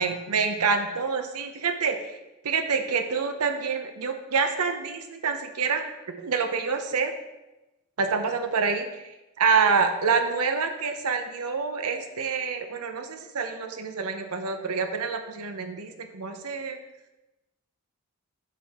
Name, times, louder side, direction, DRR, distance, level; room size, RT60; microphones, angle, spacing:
voice 1, 0.0-2.2 2.4-5.8 6.2-7.1 8.0-9.0 9.4-16.8, right 5 dB, 90° right, 7 dB, 0.7 m, -27 dB
6.5 x 6.0 x 4.2 m, 1.0 s
head